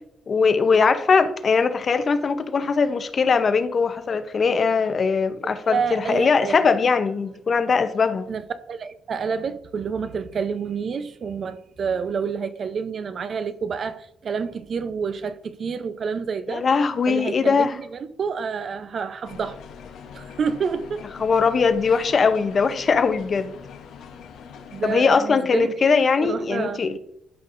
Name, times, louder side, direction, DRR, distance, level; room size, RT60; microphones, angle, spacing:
voice 1, 0.3-8.2 16.5-17.8 21.2-23.5 24.8-27.0, left 5 dB, 45° left, 0.7 m, -20 dB
voice 2, 5.7-6.8 8.3-16.7 17.1-19.6 20.1-21.0 24.7-25.7 26.2-27.0, right 6 dB, 50° right, 0.6 m, -28 dB
sound 1, 19.2-25.0, left 7 dB, 80° left, 0.9 m, -42 dB
12.0 x 5.3 x 2.6 m
cardioid pair, 90°, 0 cm